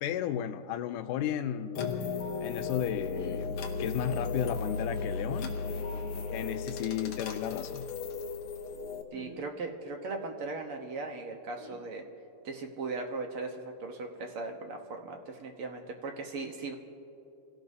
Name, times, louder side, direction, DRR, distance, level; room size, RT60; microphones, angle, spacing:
voice 1, 0.0-1.8 2.4-5.5 6.3-7.9, left 10 dB, 85° left, 9 dB, 2.2 m, -34 dB
sound 1, 1.1-1.4 3.1-3.5 4.9-5.2 7.0-7.2 9.1-9.5 11.6-11.8, left 2 dB, 10° left, 1.6 m, -49 dB
sound 2, 1.7-9.0, left 4 dB, 60° left, 1.5 m, -35 dB
voice 2, 9.1-12.0 12.4-16.7, right 3 dB, 60° right, 3 dB, 1.5 m, -38 dB
29.0 x 17.0 x 2.7 m, 2.7 s
omnidirectional pair, 3.7 m